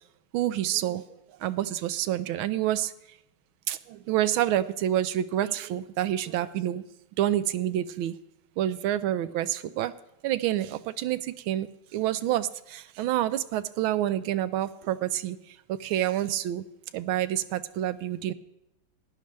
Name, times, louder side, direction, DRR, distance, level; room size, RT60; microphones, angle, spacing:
voice 1, 0.3-1.0 1.4-2.9 3.7-3.8 4.1-6.8 7.2-8.1 8.6-9.9 10.2-11.2 11.5-11.7 11.9-15.4 15.8-16.6 16.9-18.3, right 12 dB, 85° right, 13 dB, 1.4 m, -27 dB
15.5 x 10.5 x 3.3 m, 0.86 s
omnidirectional pair, 2.2 m